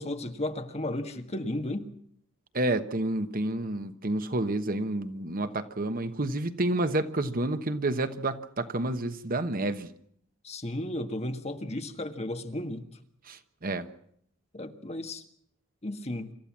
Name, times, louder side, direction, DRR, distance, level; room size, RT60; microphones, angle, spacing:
voice 1, 0.0-1.9 10.4-12.8 14.5-15.2 15.8-16.3, left 1 dB, 30° left, 7 dB, 1.6 m, -34 dB
voice 2, 2.5-9.9 13.3-13.9, right 2 dB, 45° right, 10 dB, 1.2 m, -29 dB
27.0 x 14.0 x 7.4 m, 0.67 s
head